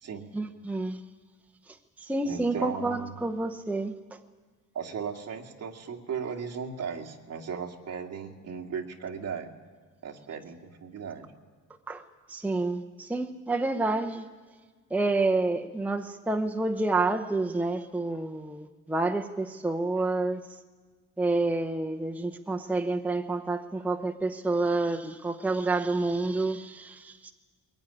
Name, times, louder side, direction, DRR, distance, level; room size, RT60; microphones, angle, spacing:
voice 1, 0.3-1.0 1.7-3.9 11.9-12.0 12.3-14.3 14.9-20.6 21.2-27.3, right 2 dB, 5° right, 0.7 m, -29 dB
voice 2, 2.2-3.1 4.7-9.5 10.0-11.3, right 6 dB, 50° right, 2.2 m, -36 dB
22.5 x 17.5 x 9.9 m
cardioid pair, 160°, 33 cm